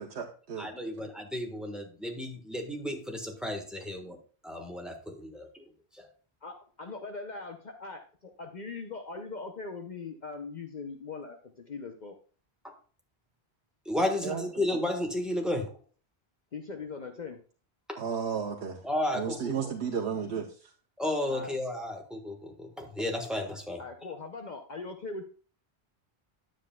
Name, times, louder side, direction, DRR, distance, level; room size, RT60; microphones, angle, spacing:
voice 1, 0.0-0.7 14.2-14.6 18.0-18.8 19.1-20.7, right 7 dB, 90° right, 1.0 m, -33 dB
voice 2, 0.6-4.2 4.4-5.5 5.9-6.1 12.6-12.7 13.8-15.7 18.8-19.7 21.0-23.8, left 1 dB, ahead, 1.3 m, -33 dB
voice 3, 6.4-12.2 14.2-14.4 16.5-17.4 21.3-21.5 23.8-25.2, left 4 dB, 50° left, 0.8 m, -41 dB
9.6 x 7.5 x 2.3 m
omnidirectional pair, 1.1 m